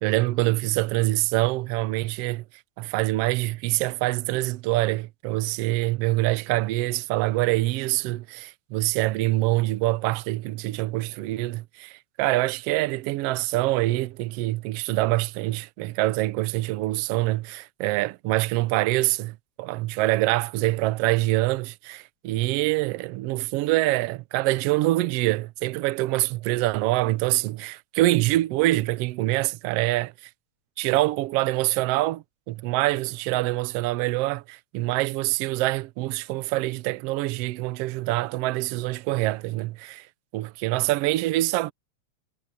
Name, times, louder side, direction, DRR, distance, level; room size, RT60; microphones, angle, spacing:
voice 1, 0.0-2.4 2.8-30.1 30.8-40.1 40.3-41.7, right 18 dB, 75° right, 1.5 m, -25 dB
omnidirectional pair, 3.3 m